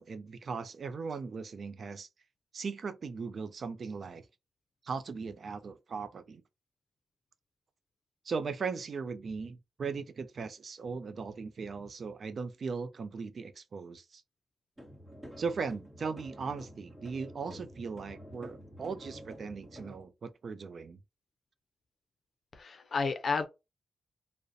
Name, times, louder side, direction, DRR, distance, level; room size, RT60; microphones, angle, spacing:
voice 1, 0.0-2.1 2.5-4.2 4.8-6.4 8.2-14.2 15.4-21.0, right 5 dB, 60° right, 0.3 m, -38 dB
sound 1, 14.8-19.9, equal, 20° right, 1.1 m, -49 dB
voice 2, 22.5-23.5, left 4 dB, 55° left, 0.5 m, -31 dB
2.4 x 2.1 x 2.5 m
cardioid pair, 70°, 0 cm